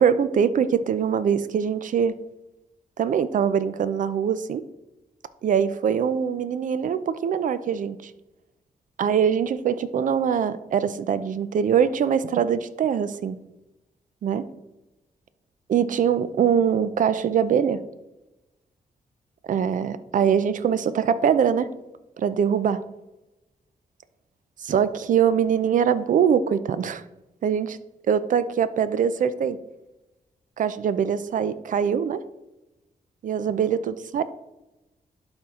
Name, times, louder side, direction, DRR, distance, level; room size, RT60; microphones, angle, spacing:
voice 1, 0.0-2.2 3.0-4.6 5.4-8.1 9.0-13.4 14.2-14.5 15.7-17.8 19.5-21.7 22.2-22.8 24.6-27.0 27.4-27.8 28.1-29.6 30.6-32.2 33.2-34.2, right 8 dB, 60° right, 14 dB, 0.5 m, -23 dB
11.5 x 4.5 x 3.6 m, 0.99 s
wide cardioid pair, 140°, 15 cm